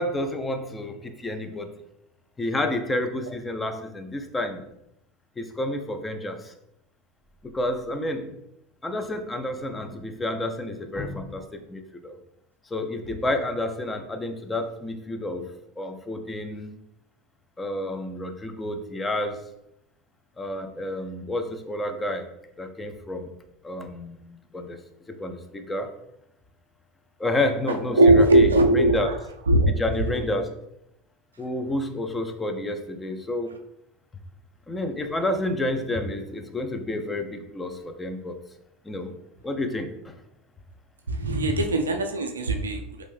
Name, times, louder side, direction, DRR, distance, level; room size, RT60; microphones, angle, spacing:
voice 1, 0.0-1.7 2.4-4.6 5.4-6.5 7.4-8.4 8.8-12.1 12.7-16.7 17.6-19.4 20.4-22.3 22.6-23.4 23.6-24.8 25.1-25.9 27.2-29.1 29.7-30.5 31.4-33.6 34.7-38.4 38.8-39.1 39.4-40.2, left 1 dB, 15° left, 6 dB, 0.5 m, -30 dB
voice 2, 27.7-29.1 29.5-29.7 41.1-43.0, right 2 dB, 80° right, 5 dB, 0.3 m, -20 dB
3.0 x 2.6 x 3.2 m, 0.81 s
figure-of-eight pair, 75°, 0 cm